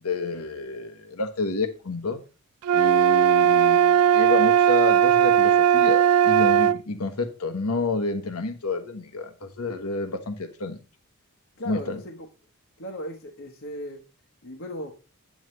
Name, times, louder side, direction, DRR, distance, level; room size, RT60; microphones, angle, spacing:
voice 1, 0.0-2.2 2.7-10.8 11.7-12.0, left 3 dB, 85° left, 1.2 m, -29 dB
sound 1, 2.6-6.8, right 9 dB, 85° right, 0.3 m, -18 dB
voice 2, 11.6-12.3 12.8-14.0 14.4-15.0, equal, 55° left, 1.1 m, -37 dB
9.3 x 7.3 x 3.2 m
head